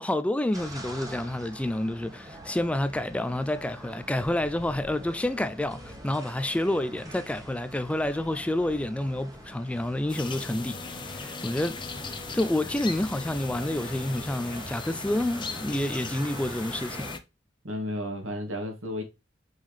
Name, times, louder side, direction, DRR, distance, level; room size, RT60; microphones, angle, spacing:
voice 1, 0.0-11.8 12.3-17.2, left 1 dB, 5° left, 0.3 m, -29 dB
sound 1, 0.5-17.2, right 1 dB, 20° right, 1.3 m, -44 dB
sound 2, 10.1-17.2, left 4 dB, 25° left, 0.8 m, -38 dB
voice 2, 17.6-19.0, left 1 dB, 80° right, 2.4 m, -32 dB
5.4 x 5.4 x 3.3 m
head